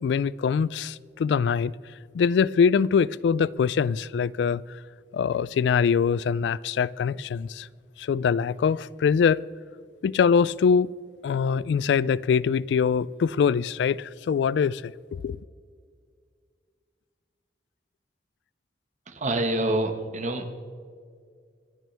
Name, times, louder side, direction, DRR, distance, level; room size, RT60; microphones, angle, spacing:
voice 1, 0.0-1.7 2.1-4.6 5.1-7.7 8.0-9.4 10.0-10.9 11.2-15.4, left 6 dB, 70° left, 0.3 m, -23 dB
voice 2, 19.1-20.6, right 1 dB, 45° right, 1.4 m, -27 dB
26.0 x 9.1 x 3.4 m
head